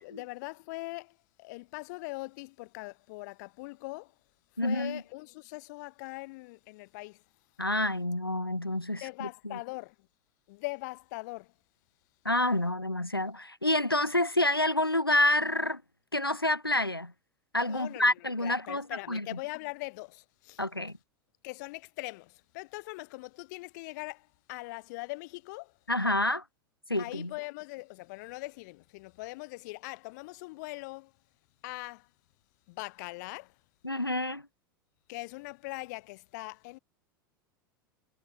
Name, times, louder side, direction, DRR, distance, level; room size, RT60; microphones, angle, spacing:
voice 1, 0.0-4.1 4.6-7.2 9.0-9.9 10.5-11.5 17.7-18.1 18.4-20.6 21.4-25.7 27.0-31.1 31.6-32.1 32.7-33.5 35.1-36.8, left 24 dB, 50° left, 6.5 m, -41 dB
voice 2, 4.6-5.0 7.6-9.6 12.2-15.8 16.1-17.1 17.5-19.3 20.6-21.0 25.9-26.4 26.9-27.3 33.8-34.4, left 1 dB, 90° left, 2.9 m, -28 dB
figure-of-eight pair, 85°, 12 cm